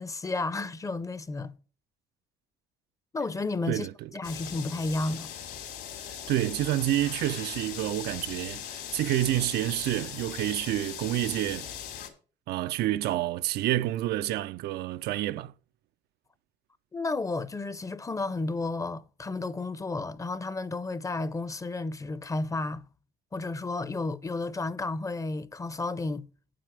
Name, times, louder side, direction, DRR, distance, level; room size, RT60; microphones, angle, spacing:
voice 1, 0.0-1.5 3.1-5.3 16.9-22.8 23.3-26.3, left 3 dB, 20° left, 0.6 m, -32 dB
voice 2, 3.7-4.1 6.1-11.7 12.5-15.5, right 14 dB, 75° right, 0.4 m, -29 dB
sound 1, 4.2-12.1, left 9 dB, 75° left, 2.6 m, -40 dB
8.6 x 7.6 x 4.9 m
cardioid pair, 110°, 17 cm